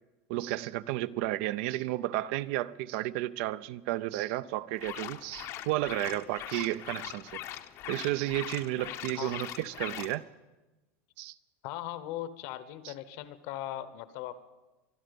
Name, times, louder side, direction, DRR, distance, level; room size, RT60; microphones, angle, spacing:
voice 1, 0.3-7.4 7.9-10.3 11.2-11.3 12.8-12.9, right 16 dB, 60° right, 0.5 m, -32 dB
sound 1, 4.8-10.2, left 12 dB, 40° left, 0.7 m, -41 dB
voice 2, 11.6-14.3, left 13 dB, 60° left, 1.0 m, -39 dB
25.0 x 10.5 x 5.3 m
supercardioid pair, 150°, 7 cm